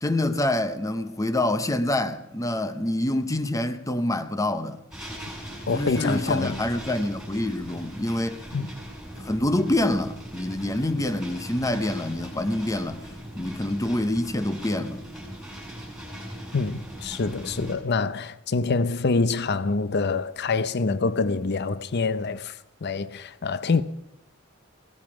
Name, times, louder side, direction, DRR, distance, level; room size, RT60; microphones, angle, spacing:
voice 1, 0.0-4.8 5.7-8.4 9.2-13.0 13.4-15.0, left 1 dB, 15° left, 0.8 m, -26 dB
sound 1, 4.9-17.7, equal, 5° right, 7.3 m, -39 dB
voice 2, 5.7-6.6 8.5-8.7 16.5-23.8, left 4 dB, 55° left, 0.7 m, -26 dB
17.5 x 13.5 x 6.1 m
head